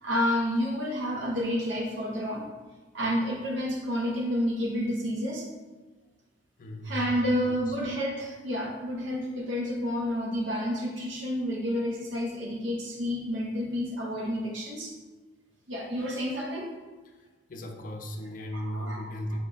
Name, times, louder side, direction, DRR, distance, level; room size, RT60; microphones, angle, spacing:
voice 1, 0.0-2.5 2.9-5.5 6.8-14.9 15.7-16.7 18.5-19.0, equal, 80° right, -1 dB, 0.8 m, -30 dB
voice 2, 6.6-6.9 7.5-7.8 17.1-19.4, equal, 45° left, 3 dB, 0.5 m, -37 dB
5.7 x 2.2 x 3.8 m, 1.3 s
head